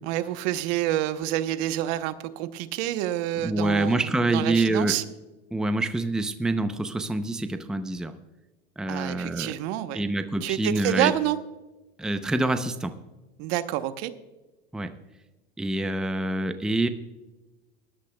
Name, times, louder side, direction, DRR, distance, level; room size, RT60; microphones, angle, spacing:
voice 1, 0.0-5.0 8.9-10.1 10.4-11.4 13.4-14.1, right 13 dB, 65° right, 11 dB, 1.0 m, -28 dB
voice 2, 3.4-5.0 5.5-8.1 8.8-9.5 9.9-11.1 12.0-13.0 14.7-15.0 15.6-16.9, right 2 dB, ahead, 9 dB, 0.6 m, -26 dB
19.5 x 11.5 x 2.2 m, 1.1 s
supercardioid pair, 115°, 31 cm